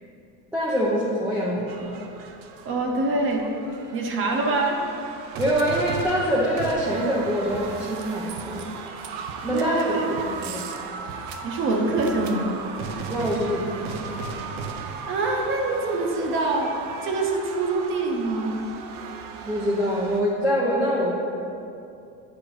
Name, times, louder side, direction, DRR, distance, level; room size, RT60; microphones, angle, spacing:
voice 1, 0.5-1.9 5.4-8.7 9.4-10.6 13.1-14.1 19.4-21.1, equal, 5° right, -7 dB, 0.4 m, -25 dB
sound 1, 1.7-20.2, right 5 dB, 80° right, 0.7 m, -36 dB
voice 2, 2.6-3.5 3.9-4.8 9.5-10.2 11.4-12.5 15.1-18.6, right 2 dB, 35° right, 2 dB, 0.7 m, -25 dB
8.8 x 4.9 x 3.1 m, 2.7 s
cardioid pair, 150°, 37 cm